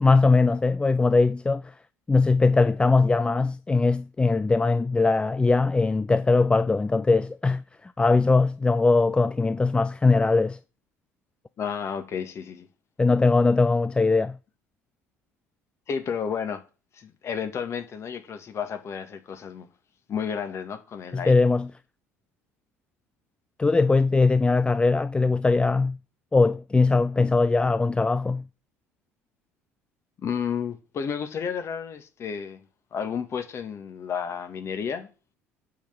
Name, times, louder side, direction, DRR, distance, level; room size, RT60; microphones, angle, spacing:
voice 1, 0.0-1.7 2.1-10.6 13.0-14.4 21.1-21.7 23.6-26.0 26.3-28.4, left 3 dB, 15° left, 0.4 m, -21 dB
voice 2, 11.6-12.7 15.9-16.6 16.9-19.7 20.1-21.3 30.2-32.6 32.9-35.1, left 7 dB, 35° left, 1.9 m, -31 dB
8.6 x 5.7 x 7.4 m
figure-of-eight pair, 60°, 8 cm